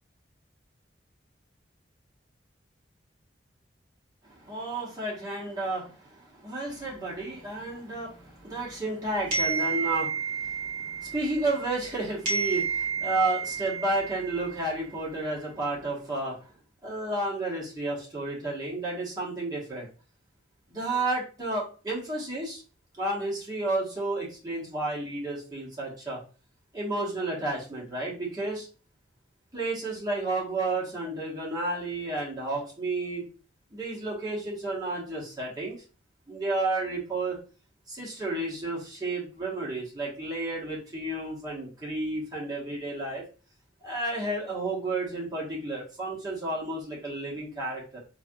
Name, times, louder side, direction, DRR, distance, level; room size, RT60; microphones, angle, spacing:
voice 1, 4.2-16.5 16.8-19.9 20.7-22.6 23.0-26.2 26.7-28.7 29.5-33.2 33.7-35.8 36.3-37.4 37.9-43.2 43.8-48.0, right 2 dB, 20° right, -5 dB, 1.0 m, -32 dB
sound 1, 9.3-11.9 12.3-14.8, right 6 dB, 50° right, 1.3 m, -31 dB
3.2 x 2.6 x 2.2 m, 0.35 s
head